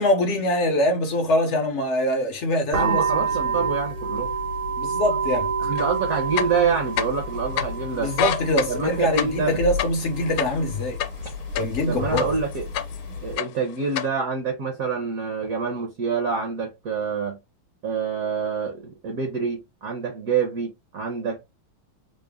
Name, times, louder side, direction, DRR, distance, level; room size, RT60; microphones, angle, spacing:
voice 1, 0.0-3.7 4.8-5.5 8.0-11.0 11.6-12.3, left 1 dB, 60° left, 0.7 m, -24 dB
voice 2, 2.7-4.3 5.6-8.1 8.7-9.5 11.9-12.6 13.2-17.4 17.8-21.4, right 5 dB, 60° right, 0.9 m, -26 dB
sound 1, 2.7-13.3, right 3 dB, 85° right, 1.9 m, -29 dB
sound 2, 5.8-5.9 6.3-7.3 7.6-7.7 8.1-11.8 12.2-13.0 13.3-14.1, left 10 dB, 85° left, 1.4 m, -27 dB
3.9 x 2.1 x 3.4 m
omnidirectional pair, 2.2 m